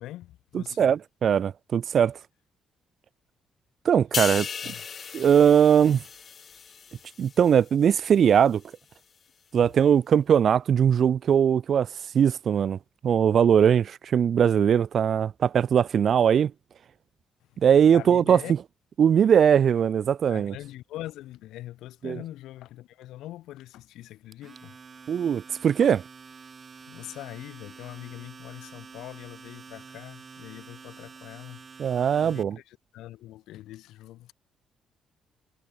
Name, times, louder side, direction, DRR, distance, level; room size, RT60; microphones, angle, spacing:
voice 1, 0.0-1.0 4.6-4.8 17.5-17.6 17.9-18.5 20.3-25.9 26.7-31.9 32.2-34.3, left 15 dB, 90° left, 2.9 m, -43 dB
voice 2, 0.5-2.2 3.8-4.5 5.1-6.0 7.2-8.6 9.5-11.9 12.1-12.8 13.0-16.5 17.6-18.4 19.0-20.5 22.0-22.2 25.1-26.0 31.8-32.6, right 8 dB, 55° right, 1.1 m, -20 dB
sound 1, 4.1-7.7 8.0-8.3, left 6 dB, 45° left, 1.5 m, -35 dB
Domestic sounds home sounds, 24.3-32.4, right 5 dB, 40° right, 8.0 m, -48 dB
cardioid pair, 90°, 0 cm